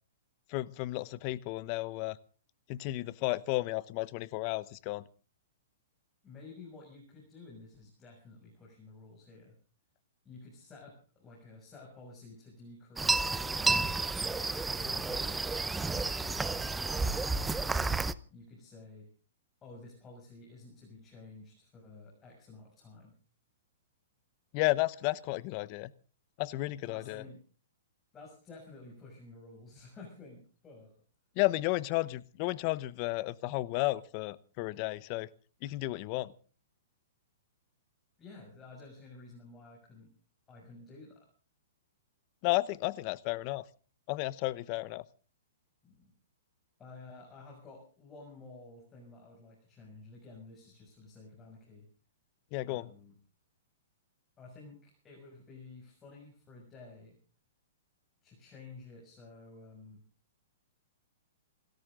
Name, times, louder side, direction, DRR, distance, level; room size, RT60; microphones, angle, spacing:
voice 1, 0.5-2.2 2.7-5.0 24.5-25.9 26.4-27.2 31.4-35.3 35.6-36.3 42.4-43.6 44.1-45.0 52.5-52.9, left 19 dB, 40° left, 18 dB, 0.9 m, -33 dB
voice 2, 6.2-9.5 10.2-13.9 14.6-15.5 16.2-17.9 18.3-19.1 19.6-23.1 26.8-27.4 28.1-30.9 38.2-40.1 40.5-41.3 45.8-46.1 46.8-51.9 52.7-53.1 54.4-57.2 58.2-60.0, left 3 dB, 20° left, -2 dB, 6.9 m, -52 dB
sound 1, 13.0-18.1, right 3 dB, 10° right, 0.7 m, -31 dB
28.0 x 13.5 x 3.8 m, 0.39 s
hypercardioid pair, 145°, 0 cm